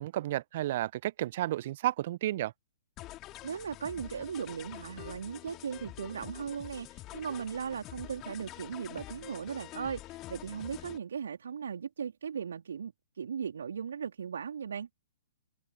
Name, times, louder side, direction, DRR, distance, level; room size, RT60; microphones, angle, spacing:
voice 1, 0.0-2.5, right 14 dB, 50° right, 0.7 m, -32 dB
sound 1, 3.0-11.0, left 17 dB, 30° left, 2.7 m, -47 dB
voice 2, 3.4-14.9, right 7 dB, 65° right, 3.6 m, -38 dB
figure-of-eight pair, 115°, 0 cm